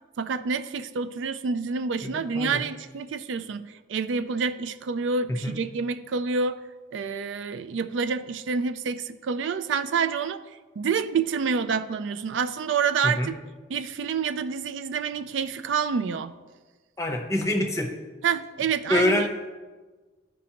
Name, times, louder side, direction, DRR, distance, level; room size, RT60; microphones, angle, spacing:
voice 1, 0.2-6.6 6.9-10.4 10.8-13.3 13.7-16.3 18.2-19.3, right 5 dB, 70° right, 10 dB, 0.4 m, -28 dB
voice 2, 2.0-2.6 5.4-5.6 13.0-13.3 17.0-17.9 18.9-19.3, left 1 dB, 15° left, 2 dB, 0.7 m, -25 dB
13.5 x 5.1 x 2.9 m, 1.3 s
head